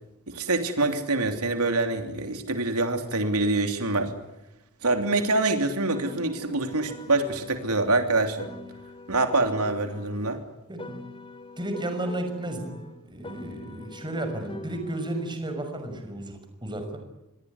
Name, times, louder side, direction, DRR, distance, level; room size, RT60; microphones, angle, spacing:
voice 1, 0.3-4.1 4.8-8.5 9.1-10.4, right 2 dB, 85° right, 6 dB, 3.1 m, -25 dB
Piano, 5.9-10.4 10.8-15.4, left 2 dB, 25° left, 3.4 m, -44 dB
voice 2, 10.7-11.0 11.6-12.8 13.1-17.0, right 1 dB, 20° right, 6 dB, 6.0 m, -33 dB
27.0 x 21.5 x 9.6 m, 0.96 s
head